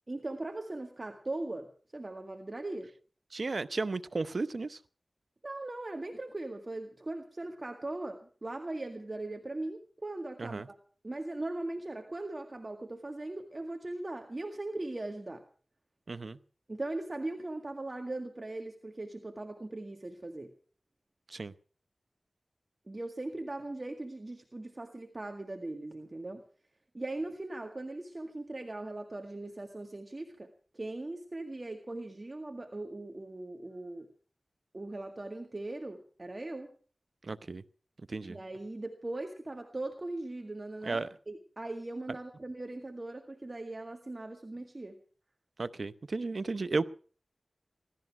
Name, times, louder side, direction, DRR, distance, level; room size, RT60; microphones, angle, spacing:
voice 1, 0.1-2.9 5.4-10.8 11.0-15.4 16.7-20.5 22.9-26.4 26.9-30.5 30.7-34.1 34.7-36.7 38.3-45.0, right 2 dB, 40° right, 1.9 m, -39 dB
voice 2, 3.3-4.8 10.4-10.7 16.1-16.4 21.3-21.5 37.2-37.6 38.1-38.4 40.8-41.1 45.6-46.9, right 3 dB, 70° right, 0.8 m, -34 dB
17.0 x 13.0 x 5.9 m
cardioid pair, 45°, 0 cm